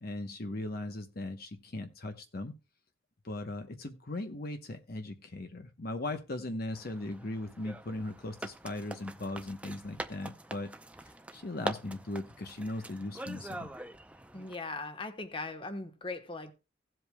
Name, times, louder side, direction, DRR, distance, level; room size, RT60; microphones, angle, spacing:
voice 1, 0.0-2.5 3.2-10.7 11.0-13.7, left 2 dB, 50° left, 1.0 m, -38 dB
sound 1, 6.7-14.5, right 1 dB, 5° right, 0.6 m, -44 dB
voice 2, 14.3-16.5, left 3 dB, 25° left, 1.2 m, -39 dB
17.0 x 7.8 x 2.2 m
head